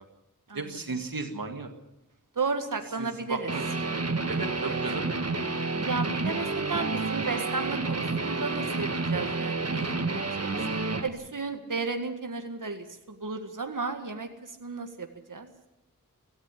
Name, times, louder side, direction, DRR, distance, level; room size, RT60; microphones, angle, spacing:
voice 1, 0.5-1.7 3.0-5.1, right 4 dB, 90° right, 5 dB, 2.0 m, -35 dB
voice 2, 2.4-3.5 4.7-4.8 5.9-10.5 11.0-15.5, right 4 dB, 65° right, 5 dB, 1.9 m, -34 dB
Guitar, 3.5-11.1, right 3 dB, 45° right, 1.6 m, -30 dB
17.0 x 15.5 x 10.0 m, 0.90 s
wide cardioid pair, 60°, 33 cm